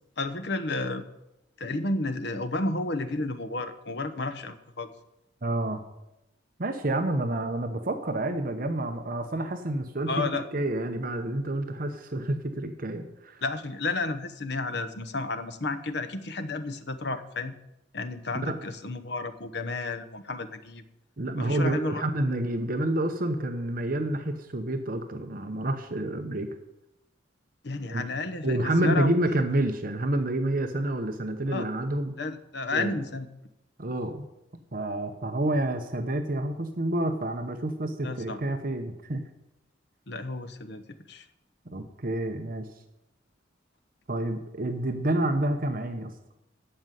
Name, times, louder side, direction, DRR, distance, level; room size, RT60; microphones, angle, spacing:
voice 1, 0.2-1.0 1.6-4.9 10.1-10.5 13.4-17.6 17.9-20.8 21.4-22.0 27.6-29.1 31.5-31.7 32.2-33.3 38.0-38.4 40.1-41.3, left 2 dB, 60° left, 11 dB, 1.0 m, -32 dB
voice 2, 5.4-5.8 6.6-13.4 18.4-18.6 21.2-26.5 27.9-28.0 28.4-32.2 32.7-32.9 33.8-34.3 34.7-39.2 41.7-42.7 44.1-46.1, right 1 dB, 45° right, 6 dB, 0.9 m, -29 dB
14.0 x 5.4 x 9.2 m, 0.90 s
head